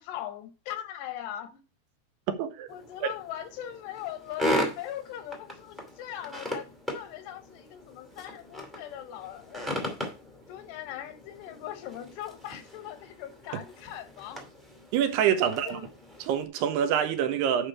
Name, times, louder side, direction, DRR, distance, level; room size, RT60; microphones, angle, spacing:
voice 1, 0.0-1.6 2.7-6.7 6.9-10.0 10.5-14.4 15.4-15.9, left 11 dB, 80° left, 3.1 m, -40 dB
voice 2, 2.3-2.7 3.0-3.1 14.9-15.8 16.2-17.7, right 9 dB, 80° right, 2.8 m, -26 dB
sound 1, 2.7-16.4, left 1 dB, ahead, 0.5 m, -37 dB
9.0 x 5.0 x 4.7 m
omnidirectional pair, 4.9 m